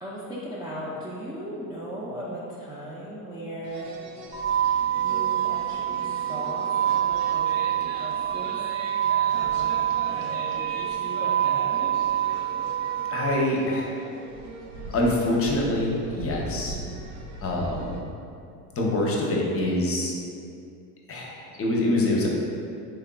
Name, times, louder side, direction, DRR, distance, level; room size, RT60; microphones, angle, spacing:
voice 1, 0.0-3.9 4.9-8.6 9.3-12.0, equal, 10° right, -8 dB, 0.3 m, -38 dB
sound 1, 3.6-18.0, right 2 dB, 80° right, 0.6 m, -40 dB
sound 2, 4.3-13.4, right 11 dB, 35° right, 0.8 m, -26 dB
voice 2, 13.1-14.0 14.9-16.8 17.4-18.0 18.7-20.1 21.1-22.3, left 1 dB, 30° left, -2 dB, 0.6 m, -25 dB
3.6 x 3.3 x 2.2 m, 2.5 s
hypercardioid pair, 75°, 47 cm